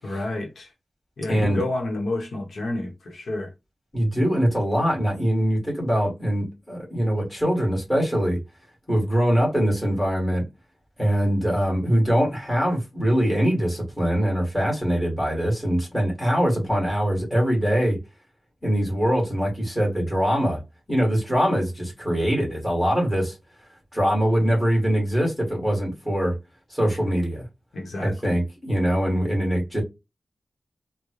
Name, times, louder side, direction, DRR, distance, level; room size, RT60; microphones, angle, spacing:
voice 1, 0.0-0.7 1.2-3.5 27.7-28.4, left 2 dB, 85° left, 1.2 m, -30 dB
voice 2, 3.9-8.4 8.9-10.4 11.0-18.0 18.6-20.6 20.9-23.4 23.9-26.4 26.7-27.4 28.0-29.8, equal, 15° left, 2.2 m, -23 dB
3.8 x 2.4 x 3.1 m
wide cardioid pair, 125°, 0 cm